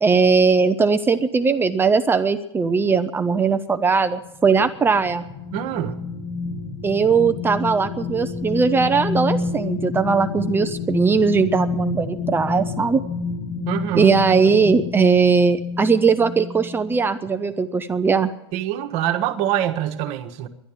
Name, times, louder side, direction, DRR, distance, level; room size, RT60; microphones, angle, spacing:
voice 1, 0.0-5.2 6.8-13.0 13.9-18.3, right 5 dB, 15° right, 9 dB, 0.6 m, -19 dB
sound 1, 4.1-17.1 17.5-17.7, left 4 dB, 30° left, 1.4 m, -29 dB
voice 2, 5.5-6.0 13.7-14.1 18.5-20.5, right 11 dB, 50° right, 6 dB, 1.4 m, -24 dB
11.5 x 11.0 x 8.9 m, 0.91 s
hypercardioid pair, 110°, 14 cm